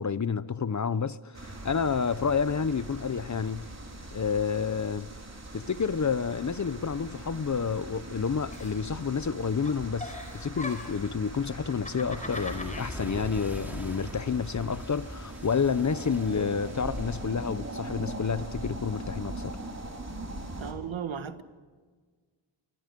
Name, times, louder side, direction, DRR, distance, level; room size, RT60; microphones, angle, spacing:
voice 1, 0.0-3.7 4.1-5.1 5.5-19.6, left 6 dB, 40° left, 0.7 m, -29 dB
sound 1, 1.3-20.7, right 2 dB, 35° right, 3.8 m, -41 dB
Clock, 2.5-5.5 5.7-8.7 9.0-17.9, equal, 5° right, 3.5 m, -43 dB
Giggle, 8.5-9.4 9.6-11.1 11.7-12.9, left 2 dB, 15° left, 4.5 m, -40 dB
voice 2, 20.6-21.4, right 7 dB, 80° right, 1.5 m, -35 dB
26.0 x 24.5 x 5.3 m
wide cardioid pair, 130°, 47 cm